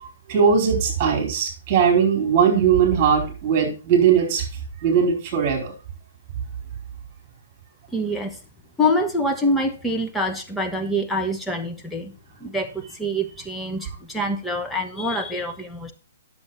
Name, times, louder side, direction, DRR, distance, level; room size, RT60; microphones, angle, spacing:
voice 1, 0.3-4.5 4.8-5.7, right 7 dB, 35° right, 4.8 m, -19 dB
voice 2, 7.9-8.4 8.8-12.1 12.4-15.9, left 1 dB, 5° left, 1.2 m, -25 dB
9.9 x 7.2 x 4.2 m
figure-of-eight pair, 125°, 0 cm